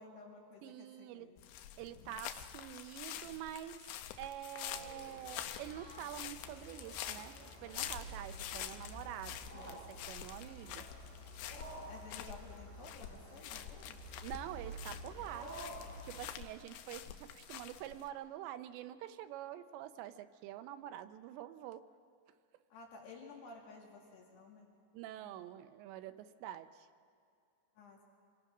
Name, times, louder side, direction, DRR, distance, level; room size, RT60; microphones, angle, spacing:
voice 1, 0.0-1.4 11.8-14.0 22.7-24.7 25.3-25.4 27.8-28.0, left 3 dB, 70° left, -1 dB, 4.3 m, -54 dB
voice 2, 0.6-1.3 1.8-3.9 4.2-10.9 14.2-15.5 16.0-21.9 24.9-26.9, right 12 dB, 85° right, 11 dB, 3.0 m, -47 dB
sound 1, 1.4-18.1, left 11 dB, 85° left, 3.2 m, -47 dB
sound 2, 4.7-16.2, right 1 dB, 40° right, 8.4 m, -50 dB
27.0 x 21.0 x 6.1 m, 2.5 s
omnidirectional pair, 5.1 m